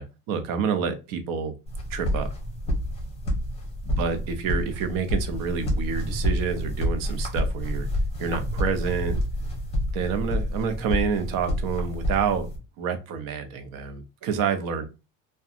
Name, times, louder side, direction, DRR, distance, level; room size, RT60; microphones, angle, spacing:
voice 1, 0.0-1.5 1.9-2.3 3.9-7.9 8.2-9.2 9.9-12.5 12.8-14.9, right 6 dB, 65° right, 8 dB, 0.7 m, -28 dB
sound 1, 1.7-12.6, equal, 15° left, 0.8 m, -28 dB
2.7 x 2.2 x 2.4 m, 0.28 s
cardioid pair, 140°, 36 cm